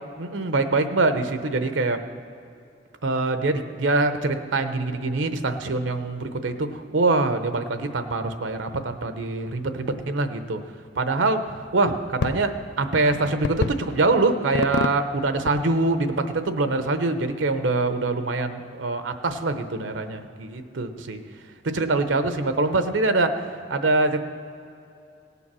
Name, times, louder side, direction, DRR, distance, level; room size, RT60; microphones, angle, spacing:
voice 1, 0.2-2.0 3.0-10.6 11.0-11.4 11.7-21.2 21.6-23.3 23.7-24.2, right 3 dB, 90° right, 9 dB, 0.8 m, -24 dB
sound 1, 11.5-16.5, left 4 dB, 60° left, 0.4 m, -31 dB
18.0 x 7.0 x 6.1 m, 2.6 s
head